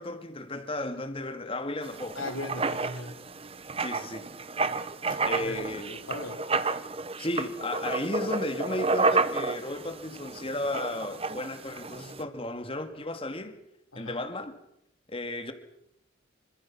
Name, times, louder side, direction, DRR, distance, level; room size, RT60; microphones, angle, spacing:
voice 1, 0.0-2.2 3.8-4.5 5.2-5.9 7.2-13.6 14.0-14.5 15.1-15.5, left 1 dB, 30° left, 2.3 m, -34 dB
Writing, 1.8-12.2, right 3 dB, 30° right, 1.1 m, -31 dB
voice 2, 2.1-3.1 5.1-6.4 13.9-14.2, left 2 dB, 85° left, 4.6 m, -38 dB
26.5 x 25.5 x 6.1 m
head